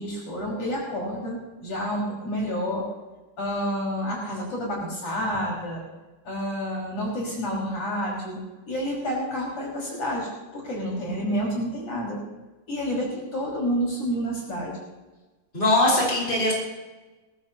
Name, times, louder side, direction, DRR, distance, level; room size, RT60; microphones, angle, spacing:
voice 1, 0.0-2.8 3.4-5.8 6.2-8.4 8.7-12.2 12.7-14.7, equal, 50° left, -4 dB, 6.7 m, -29 dB
voice 2, 15.5-16.5, left 1 dB, 15° left, -5 dB, 5.5 m, -21 dB
21.0 x 18.0 x 3.0 m, 1.2 s
omnidirectional pair, 3.4 m